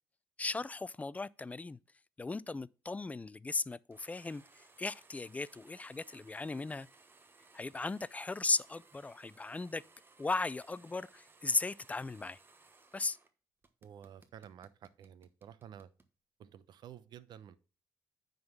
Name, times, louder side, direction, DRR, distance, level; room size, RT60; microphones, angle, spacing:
voice 1, 0.4-1.8 2.2-6.9 7.5-9.8 10.2-12.4 12.9-13.2, left 3 dB, 15° left, 0.4 m, -37 dB
sound 1, 3.9-13.3 13.6-16.1, right 3 dB, 25° right, 1.2 m, -63 dB
voice 2, 13.8-15.9 16.4-17.6, right 9 dB, 60° right, 0.8 m, -52 dB
9.5 x 3.9 x 6.0 m
supercardioid pair, 75°, 8 cm